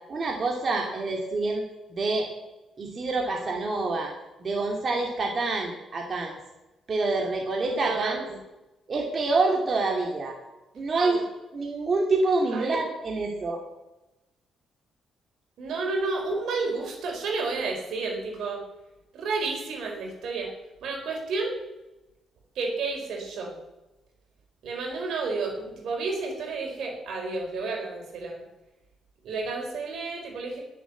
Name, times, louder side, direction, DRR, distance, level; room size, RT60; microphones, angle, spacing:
voice 1, 0.1-1.6 1.9-2.3 2.8-4.1 4.4-6.3 6.9-8.3 8.9-10.4 10.7-11.2 11.5-13.6, right 3 dB, 40° right, 0 dB, 2.5 m, -27 dB
voice 2, 7.7-8.3 11.0-11.2 12.5-12.8 15.6-18.6 19.1-20.5 20.8-21.6 22.5-23.5 24.6-28.4 29.2-30.6, right 3 dB, 75° right, 1 dB, 4.5 m, -31 dB
20.0 x 7.3 x 7.3 m, 1.0 s
cardioid pair, 90°, 0 cm